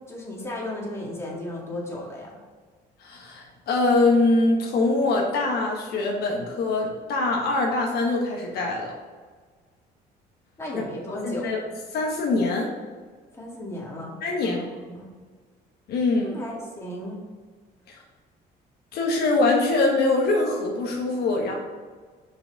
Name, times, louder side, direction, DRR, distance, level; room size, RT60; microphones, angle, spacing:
voice 1, 0.1-2.4 10.6-11.5 13.3-15.1 16.2-17.3, left 1 dB, 15° left, -4 dB, 2.0 m, -35 dB
voice 2, 3.0-8.9 11.2-11.6 11.9-12.7 14.2-14.6 15.9-16.4 17.9-18.0 18.9-21.5, left 2 dB, 70° left, -1 dB, 1.3 m, -23 dB
5.9 x 4.9 x 4.0 m, 1.5 s
cardioid pair, 110°, 17 cm